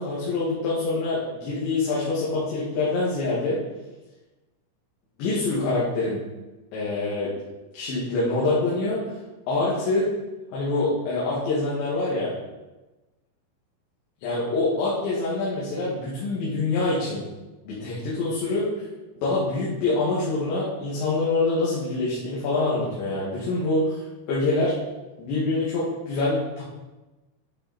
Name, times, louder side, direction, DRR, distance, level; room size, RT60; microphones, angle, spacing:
voice 1, 0.0-3.6 5.2-6.2 6.7-7.3 7.7-9.0 9.5-10.1 10.5-12.3 14.2-17.2 17.7-18.7 19.2-24.0 24.3-24.7 25.2-26.6, left 2 dB, 65° left, -9 dB, 4.4 m, -25 dB
12.0 x 7.3 x 4.4 m, 1.1 s
omnidirectional pair, 5.7 m